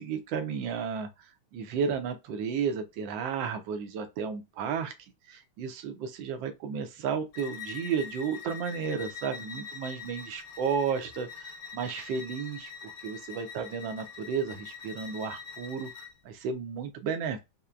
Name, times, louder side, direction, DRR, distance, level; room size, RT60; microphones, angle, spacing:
voice 1, 0.0-4.9 5.3-15.9 16.2-17.4, right 6 dB, 70° right, 1.3 m, -33 dB
Bowed string instrument, 7.3-16.1, left 6 dB, 65° left, 0.9 m, -44 dB
5.6 x 2.2 x 2.4 m
omnidirectional pair, 2.3 m